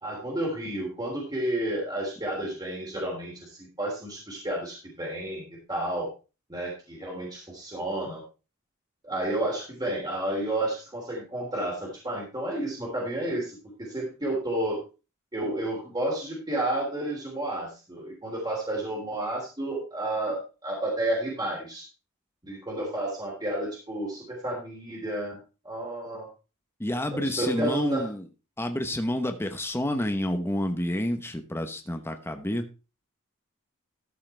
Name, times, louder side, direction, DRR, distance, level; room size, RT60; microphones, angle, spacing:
voice 1, 0.0-5.4 5.7-6.1 6.5-8.2 9.0-14.8 15.3-21.9 22.4-25.4 25.6-26.3 27.1-28.1, right 1 dB, 20° right, -4 dB, 3.4 m, -31 dB
voice 2, 26.8-28.3 28.6-32.6, left 1 dB, 10° left, 6 dB, 1.0 m, -29 dB
13.5 x 5.7 x 4.4 m, 0.32 s
head